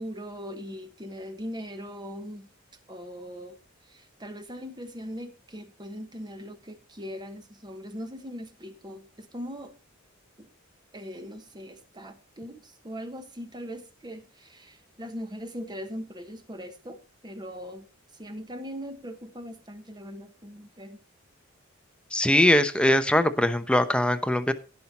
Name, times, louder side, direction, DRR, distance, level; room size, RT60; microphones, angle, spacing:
voice 1, 0.0-2.5 2.9-9.7 10.4-10.5 10.9-17.9 18.1-21.0, equal, 20° right, 1.2 m, -40 dB
voice 2, 22.1-24.5, left 1 dB, 5° left, 0.8 m, -21 dB
17.0 x 5.8 x 4.2 m
head